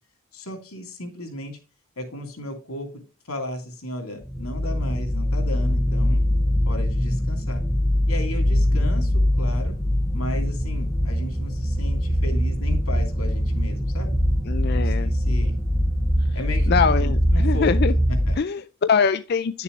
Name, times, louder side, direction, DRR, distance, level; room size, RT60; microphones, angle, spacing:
voice 1, 0.3-1.6 2.0-3.0 3.3-6.2 6.7-7.6 8.1-9.8 10.1-14.2 14.7-15.5 16.3-17.7 18.1-18.4, left 1 dB, 90° left, 5 dB, 3.0 m, -34 dB
sound 1, 4.2-18.3, equal, 10° left, 0.6 m, -22 dB
voice 2, 14.5-15.1 16.7-17.9 18.4-19.6, left 5 dB, 50° left, 12 dB, 0.4 m, -23 dB
10.5 x 6.9 x 3.2 m, 0.31 s
head